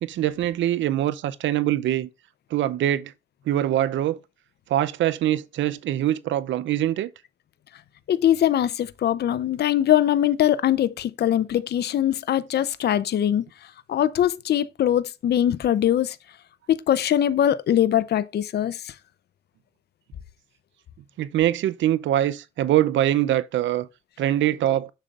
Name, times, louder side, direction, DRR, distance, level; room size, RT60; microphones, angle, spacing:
voice 1, 0.0-2.1 2.5-3.1 3.5-4.2 4.7-7.1 21.2-23.9 24.2-24.9, right 12 dB, 70° right, 0.6 m, -23 dB
voice 2, 8.1-13.4 13.9-16.2 16.7-18.9, left 11 dB, 55° left, 0.6 m, -22 dB
7.3 x 6.7 x 2.4 m
cardioid pair, 90°, 20 cm